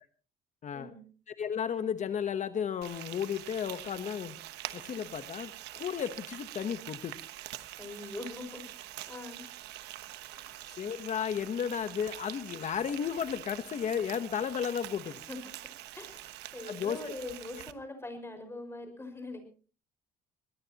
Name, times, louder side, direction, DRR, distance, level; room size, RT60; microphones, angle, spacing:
voice 1, 1.3-4.4 4.7-7.2 10.6-15.2 16.7-17.0, left 8 dB, 45° left, 11 dB, 1.1 m, -33 dB
Frying (food), 2.8-17.7, right 15 dB, 85° right, 1.1 m, -45 dB
voice 2, 7.8-9.5 10.3-10.6 15.0-15.7 15.9-19.4, left 2 dB, 15° left, 7 dB, 5.5 m, -43 dB
21.0 x 20.5 x 3.0 m, 0.38 s
cardioid pair, 110°, 17 cm